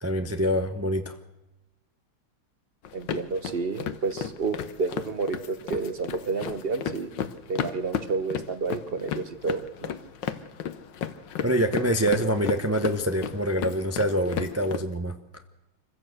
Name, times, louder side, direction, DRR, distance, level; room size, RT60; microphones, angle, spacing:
voice 1, 0.0-1.1 11.4-15.1, right 1 dB, 15° right, 7 dB, 0.5 m, -25 dB
sound 1, 2.8-14.8, left 8 dB, 65° left, 1.6 m, -34 dB
voice 2, 2.9-7.1 7.5-9.9, right 4 dB, 35° right, 11 dB, 1.1 m, -30 dB
25.5 x 15.5 x 7.9 m, 1.0 s
omnidirectional pair, 2.3 m